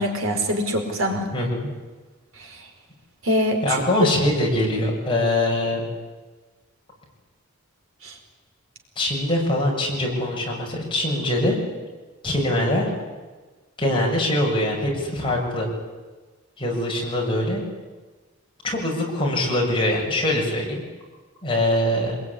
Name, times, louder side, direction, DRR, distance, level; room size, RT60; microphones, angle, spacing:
voice 1, 0.0-1.3 2.4-2.6 3.2-3.8 8.0-8.1, equal, 60° right, 3 dB, 4.7 m, -24 dB
voice 2, 1.3-1.7 3.6-5.8 9.0-11.6 12.2-12.9 13.8-15.7 16.6-17.6 18.6-20.8 21.4-22.2, left 1 dB, 25° left, -2 dB, 7.0 m, -23 dB
26.5 x 21.5 x 10.0 m, 1.3 s
head